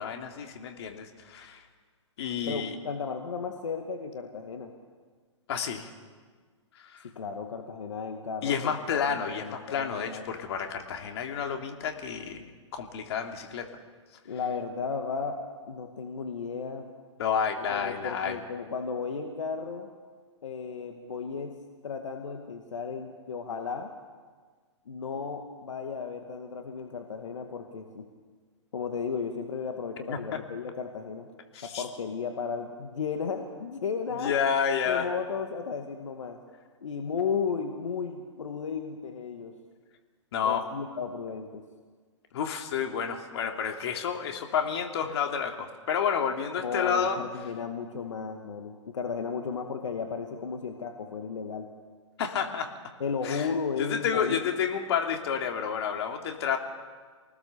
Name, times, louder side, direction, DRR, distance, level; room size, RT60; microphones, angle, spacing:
voice 1, 0.0-1.6 2.2-2.7 5.5-5.9 6.7-7.1 8.4-13.7 17.2-18.4 30.1-30.2 31.5-31.8 34.1-35.1 40.3-40.6 42.3-47.2 52.2-52.7 53.2-56.6, left 7 dB, 60° left, 4 dB, 3.1 m, -30 dB
voice 2, 2.5-4.7 7.2-10.3 14.3-15.4 15.7-16.9 17.7-19.9 20.4-21.5 21.8-23.9 24.9-28.0 28.7-31.3 31.6-34.4 34.9-36.4 36.8-39.5 40.4-41.6 46.6-51.7 53.0-54.4, left 5 dB, 75° left, 4 dB, 2.2 m, -34 dB
28.0 x 19.5 x 7.0 m, 1.6 s
hypercardioid pair, 130°, 16 cm